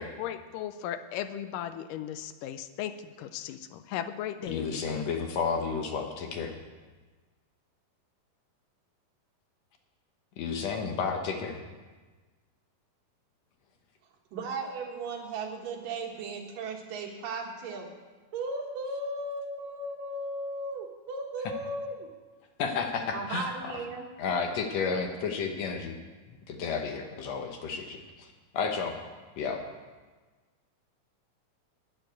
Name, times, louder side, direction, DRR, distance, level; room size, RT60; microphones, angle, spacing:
voice 1, 0.0-5.1, left 10 dB, 80° left, 11 dB, 2.1 m, -37 dB
voice 2, 4.5-6.5 10.4-11.6 21.4-21.5 22.6-23.7 24.2-25.9 26.5-28.3 28.5-29.0 29.4-29.6, left 5 dB, 65° left, 4 dB, 1.8 m, -32 dB
voice 3, 14.3-17.9 18.3-22.1 23.1-24.1, right 2 dB, 70° right, 2 dB, 3.0 m, -36 dB
12.0 x 6.8 x 9.4 m, 1.3 s
omnidirectional pair, 4.0 m